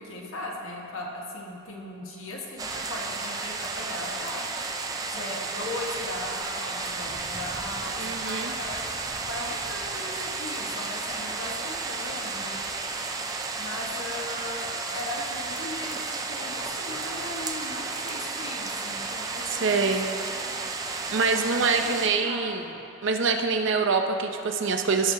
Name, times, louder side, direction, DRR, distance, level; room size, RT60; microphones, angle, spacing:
voice 1, 0.0-4.4 5.1-8.9 9.3-12.6 13.0-13.2 13.6-14.7 14.9-19.9 20.4-20.7 21.8-21.9 22.2-22.5, left 2 dB, 75° left, -2 dB, 1.4 m, -38 dB
sound 1, 2.6-22.1, right 3 dB, 15° right, 0.4 m, -33 dB
voice 2, 8.0-8.5 19.5-20.1 21.1-22.6 23.0-25.1, right 4 dB, 60° right, 4 dB, 0.7 m, -25 dB
16.5 x 6.3 x 2.8 m, 2.9 s
head